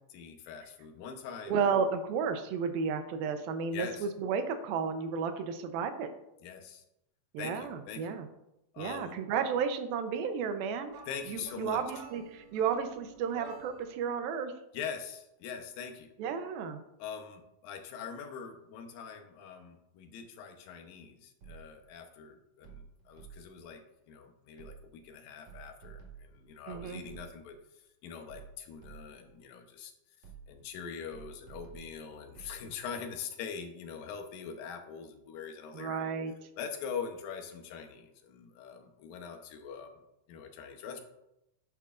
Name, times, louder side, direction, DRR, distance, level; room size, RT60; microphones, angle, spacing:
voice 1, 0.1-1.6 3.7-4.1 6.4-6.8 7.4-8.1 8.7-9.2 11.1-11.8 14.7-16.1 17.0-27.6 28.0-29.9 30.5-36.1 36.6-40.0 40.3-41.0, left 6 dB, 80° left, 5 dB, 2.6 m, -43 dB
voice 2, 1.5-6.1 7.3-8.3 8.8-10.9 11.3-14.5 16.2-16.8 26.7-27.0 35.7-36.3, right 6 dB, 90° right, 8 dB, 2.7 m, -32 dB
sound 1, 10.9-14.0, right 6 dB, 75° right, 2.0 m, -50 dB
sound 2, 21.4-21.9 22.6-23.7 24.6-25.1 25.5-27.6 28.3-29.3 30.2-30.7 31.1-32.6, right 7 dB, 55° right, 3.2 m, -51 dB
10.5 x 9.4 x 2.5 m, 0.86 s
omnidirectional pair, 4.1 m